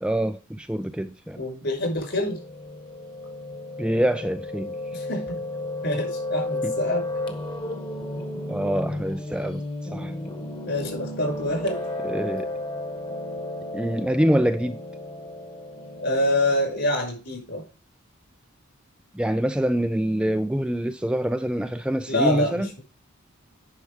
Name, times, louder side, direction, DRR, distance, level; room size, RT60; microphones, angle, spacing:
voice 1, 0.0-1.4 3.8-4.8 6.6-6.7 8.5-9.6 9.9-10.2 12.0-12.5 13.7-14.8 19.1-22.7, equal, 5° right, 0.4 m, -25 dB
voice 2, 1.4-2.4 4.9-5.4 5.8-7.1 10.6-11.8 16.0-17.6 22.1-22.8, left 1 dB, 55° left, 6.0 m, -26 dB
Piano, 2.2-16.7, left 1 dB, 25° left, 1.4 m, -33 dB
9.8 x 5.8 x 5.0 m
head